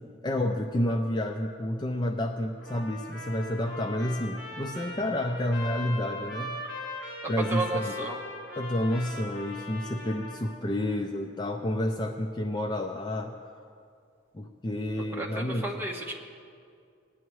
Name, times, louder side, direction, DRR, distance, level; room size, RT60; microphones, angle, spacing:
voice 1, 0.2-6.6 7.3-7.9 8.6-13.4 14.3-15.7, left 1 dB, 20° left, 4 dB, 0.4 m, -30 dB
Trumpet, 2.6-10.6, left 1 dB, 75° left, 3.1 m, -40 dB
voice 2, 7.5-8.2 15.1-16.1, right 2 dB, 10° right, -1 dB, 1.2 m, -32 dB
20.0 x 9.9 x 3.1 m, 2.3 s
head